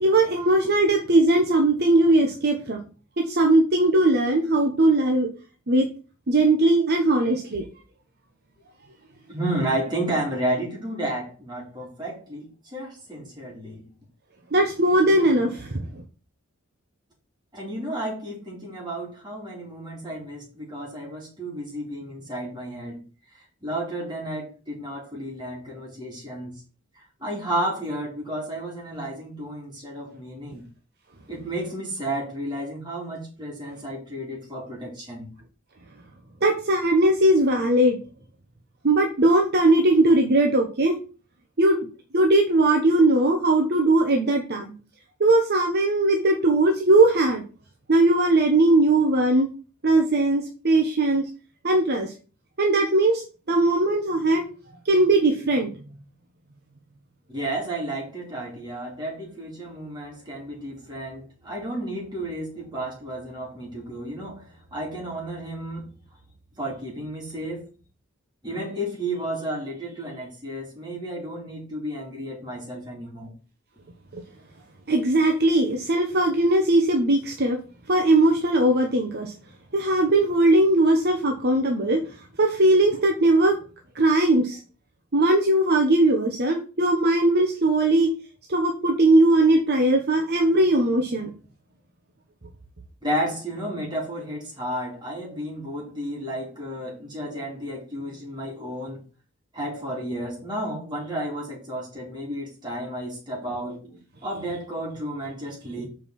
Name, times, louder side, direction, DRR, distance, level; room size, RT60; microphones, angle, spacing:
voice 1, 0.0-2.8 3.2-5.3 5.7-5.9 6.3-7.6 14.5-16.0 36.4-38.0 38.8-41.0 41.6-41.9 42.1-44.7 45.2-47.4 47.9-49.5 49.8-51.2 51.6-52.1 52.6-53.2 53.5-54.4 54.8-55.7 74.1-74.2 74.9-77.6 77.9-79.3 79.7-82.0 82.4-83.6 83.9-84.6 85.1-88.1 88.5-91.3, right 2 dB, 50° right, 2 dB, 1.1 m, -19 dB
voice 2, 9.3-13.9 17.5-23.0 23.3-26.6 26.9-30.7 31.3-35.3 57.3-65.9 66.6-67.7 68.4-73.3 93.0-99.0 99.5-105.8, right 1 dB, 20° right, -4 dB, 3.6 m, -32 dB
7.2 x 5.3 x 4.3 m, 0.35 s
head